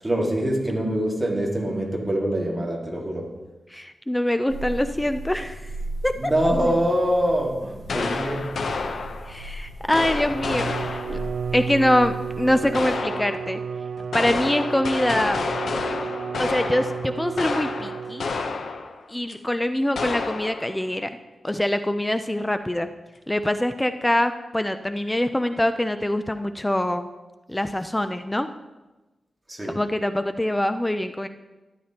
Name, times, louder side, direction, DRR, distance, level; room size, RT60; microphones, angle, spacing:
voice 1, 0.0-3.3 6.2-8.5 29.5-29.8, equal, 15° right, -2 dB, 1.9 m, -24 dB
voice 2, 3.7-5.7 6.0-6.3 9.3-11.2 11.5-13.6 14.1-15.4 16.4-18.3 19.1-21.1 21.4-22.9 23.3-27.1 27.5-28.5 29.7-31.3, left 1 dB, 10° left, 9 dB, 0.4 m, -24 dB
sound 1, 4.5-13.0, right 1 dB, 35° right, 1.0 m, -37 dB
sound 2, 7.9-9.4 9.9-11.3 12.7-13.6 14.0-19.0 19.3-19.4 20.0-20.8, left 4 dB, 75° left, 0.8 m, -29 dB
Bowed string instrument, 10.2-18.5, right 6 dB, 75° right, 0.3 m, -33 dB
12.5 x 10.0 x 2.9 m, 1.1 s
wide cardioid pair, 140°, 0 cm